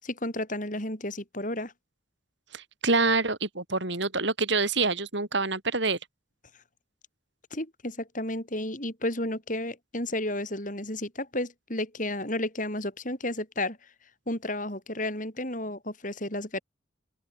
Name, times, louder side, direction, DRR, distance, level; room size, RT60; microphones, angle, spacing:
voice 1, 0.0-1.7 7.5-13.8 14.3-16.6, left 1 dB, 40° left, 7.7 m, -32 dB
voice 2, 2.5-6.0, right 3 dB, 65° right, 4.1 m, -26 dB
open air
head